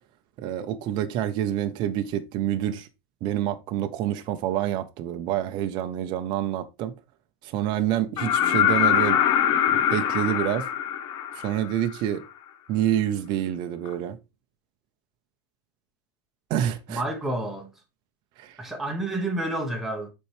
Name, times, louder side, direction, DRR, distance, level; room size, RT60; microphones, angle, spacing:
voice 1, 0.4-2.9 3.2-6.9 7.4-9.2 9.7-10.7 11.4-12.2 12.7-14.2 16.5-17.0 18.4-18.6, right 11 dB, 35° right, 0.6 m, -27 dB
sound 1, 8.2-12.0 13.9-14.0, left 10 dB, 35° left, 0.7 m, -23 dB
voice 2, 16.9-17.7 18.6-20.1, right 1 dB, 5° right, 0.9 m, -29 dB
7.1 x 4.5 x 3.2 m
supercardioid pair, 160°, 13 cm